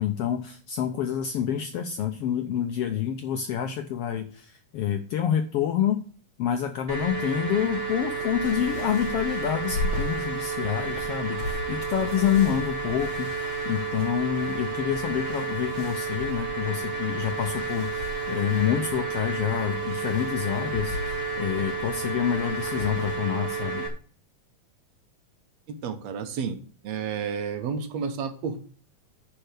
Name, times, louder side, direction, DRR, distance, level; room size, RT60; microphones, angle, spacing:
voice 1, 0.0-6.0 6.4-13.3 13.6-23.8, left 10 dB, 85° left, 6 dB, 1.3 m, -27 dB
sound 1, 6.9-23.9, right 4 dB, 30° right, 1.3 m, -31 dB
sound 2, 7.6-23.2, left 2 dB, 70° left, 2.7 m, -39 dB
voice 2, 25.7-26.6 26.8-28.7, right 6 dB, 65° right, 8 dB, 2.1 m, -31 dB
10.0 x 4.5 x 6.7 m, 0.43 s
omnidirectional pair, 3.6 m